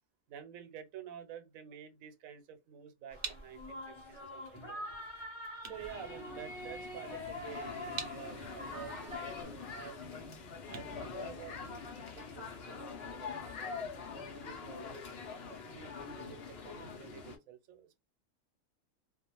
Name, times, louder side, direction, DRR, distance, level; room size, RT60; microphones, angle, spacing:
voice 1, 0.3-4.8 5.6-10.3 10.7-13.8 14.1-15.0 15.5-18.0, right 9 dB, 80° right, 1.0 m, -50 dB
sound 1, 2.8-12.0, right 6 dB, 55° right, 0.6 m, -49 dB
sound 2, 3.1-9.4, left 2 dB, 25° left, 0.7 m, -45 dB
sound 3, 5.7-17.4, left 5 dB, 60° left, 0.8 m, -45 dB
2.4 x 2.1 x 2.8 m
omnidirectional pair, 1.4 m